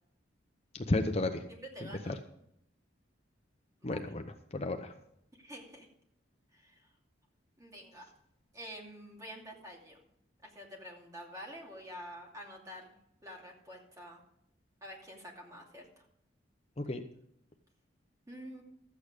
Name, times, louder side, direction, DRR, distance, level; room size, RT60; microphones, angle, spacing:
voice 1, 0.7-1.4 1.8-2.1 3.8-4.9 16.8-17.0, left 2 dB, 35° left, 6 dB, 0.7 m, -33 dB
voice 2, 1.5-2.3 3.8-4.1 5.4-5.9 6.5-6.8 7.6-8.1 8.5-10.0 10.4-13.0 13.2-14.2 14.8-15.9 18.3-18.6, equal, 20° right, 0 dB, 2.6 m, -48 dB
13.0 x 8.6 x 5.0 m, 0.75 s
head